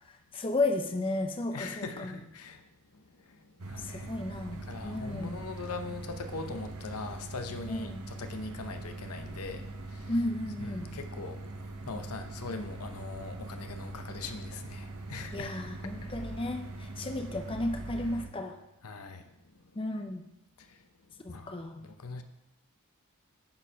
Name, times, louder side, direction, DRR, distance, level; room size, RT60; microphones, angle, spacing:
voice 1, 0.3-2.1 3.8-5.4 7.7-8.0 10.1-10.9 15.3-18.6 19.8-20.2 21.2-21.8, left 2 dB, 25° left, 6 dB, 0.5 m, -33 dB
voice 2, 1.5-2.6 2.9-4.2 4.6-10.1 10.6-11.4 11.8-15.7 16.0-16.2 18.8-19.5 20.6-20.8 21.3-21.5 21.8-22.2, left 3 dB, 85° left, 7 dB, 0.8 m, -41 dB
sound 1, 3.6-18.3, right 2 dB, 80° right, 0.9 m, -42 dB
9.5 x 4.4 x 5.6 m, 0.88 s
head